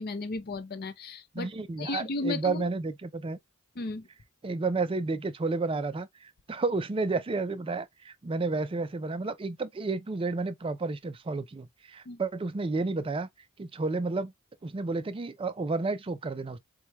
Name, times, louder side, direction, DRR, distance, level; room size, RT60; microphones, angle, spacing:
voice 1, 0.0-1.5 1.8-2.7 3.8-4.1 12.1-12.2, left 2 dB, 45° left, 0.6 m, -34 dB
voice 2, 1.3-3.4 4.4-13.3 13.6-14.3 14.6-16.6, right 3 dB, 25° right, 0.4 m, -31 dB
4.6 x 2.2 x 2.9 m
head